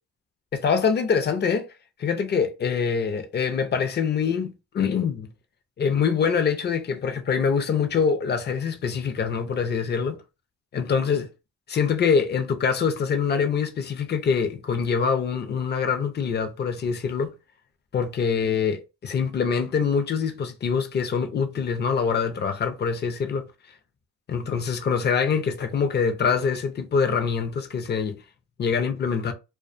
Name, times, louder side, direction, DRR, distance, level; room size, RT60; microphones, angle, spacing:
voice 1, 0.5-1.7 2.0-5.3 5.8-10.2 10.7-11.3 11.7-17.3 17.9-23.5 24.3-28.2 28.6-29.3, left 6 dB, 35° left, 0.5 m, -24 dB
2.3 x 2.2 x 2.5 m
cardioid pair, 90°, 30 cm